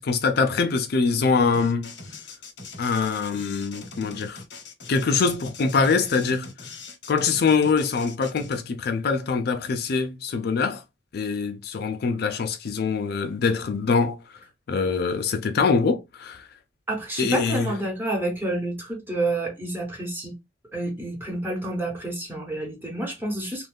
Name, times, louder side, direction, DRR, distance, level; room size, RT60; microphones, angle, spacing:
voice 1, 0.0-1.9 2.8-4.4 4.9-6.5 7.1-10.8 11.1-14.2 14.7-16.5 17.2-17.7, left 4 dB, 60° left, 0.4 m, -24 dB
sound 1, 1.5-8.6, left 3 dB, 80° left, 0.8 m, -42 dB
voice 2, 16.9-20.4 20.7-23.7, right 2 dB, 10° right, 1.1 m, -29 dB
2.5 x 2.2 x 3.4 m
head